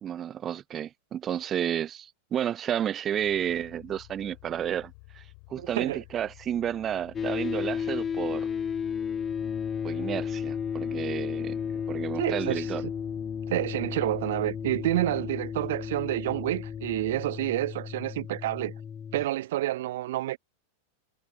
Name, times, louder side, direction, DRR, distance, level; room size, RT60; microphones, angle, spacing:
voice 1, 0.0-5.2 5.5-8.5 9.8-11.6 11.9-12.9, right 10 dB, 25° right, 1.0 m, -31 dB
sound 1, 3.2-17.2, left 33 dB, 45° left, 3.9 m, -52 dB
voice 2, 5.6-6.0 12.1-12.8 13.5-18.7 19.1-20.4, right 15 dB, 55° right, 0.5 m, -29 dB
sound 2, 7.1-19.3, left 7 dB, 20° left, 1.1 m, -33 dB
figure-of-eight pair, 90°, 0 cm